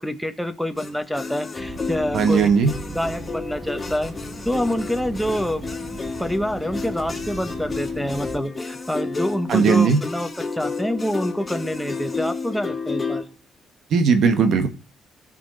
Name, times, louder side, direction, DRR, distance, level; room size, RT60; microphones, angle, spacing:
voice 1, 0.0-2.5 2.9-4.1 4.4-5.6 5.9-13.3, equal, ahead, 7 dB, 1.4 m, -26 dB
sound 1, 0.8-13.2, left 4 dB, 25° left, 3.0 m, -31 dB
sound 2, 1.6-8.4, right 3 dB, 30° right, 1.8 m, -38 dB
voice 2, 2.1-2.7 9.5-10.0 13.9-14.7, right 5 dB, 70° right, 7 dB, 1.6 m, -17 dB
17.5 x 6.0 x 4.2 m, 0.34 s
cardioid pair, 90°, 0 cm